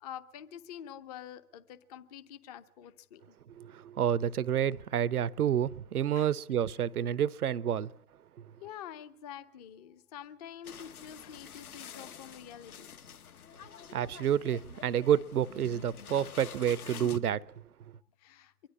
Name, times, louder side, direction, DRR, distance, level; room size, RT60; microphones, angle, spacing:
voice 1, 0.0-3.4 6.1-6.3 8.6-13.0 18.2-18.5, left 9 dB, 25° left, 0.8 m, -47 dB
voice 2, 3.6-7.9 13.9-17.4, right 9 dB, 65° right, 0.7 m, -29 dB
sound 1, 10.6-17.2, left 8 dB, 60° left, 1.4 m, -48 dB
24.0 x 12.0 x 9.5 m
figure-of-eight pair, 125°, 49 cm